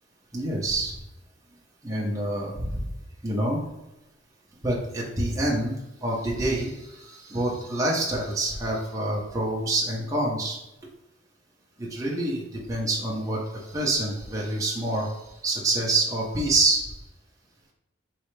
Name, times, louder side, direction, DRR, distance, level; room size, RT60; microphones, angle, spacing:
voice 1, 0.3-0.9 1.8-2.9 3.2-3.6 4.6-5.7 6.0-10.6 11.8-16.8, right 2 dB, 20° right, -4 dB, 0.8 m, -27 dB
4.7 x 3.3 x 3.2 m, 0.94 s
head